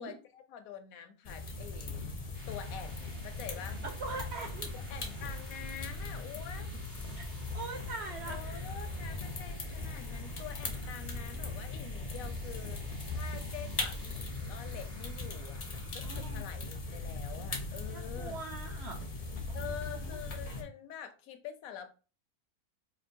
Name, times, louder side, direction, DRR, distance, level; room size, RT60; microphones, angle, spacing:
voice 1, 0.0-2.1 2.5-3.8 4.7-7.0 8.3-15.6 15.9-18.4 19.5-21.9, left 9 dB, 75° left, 1.0 m, -46 dB
sound 1, 1.2-20.6, left 2 dB, 55° left, 0.4 m, -39 dB
sound 2, 2.1-16.6, equal, 85° right, 2.4 m, -52 dB
voice 2, 3.8-4.7 7.2-7.3 7.5-8.7 16.0-16.5 17.9-19.0 19.5-20.0, right 3 dB, 65° right, 0.6 m, -42 dB
4.4 x 2.6 x 2.6 m
omnidirectional pair, 1.6 m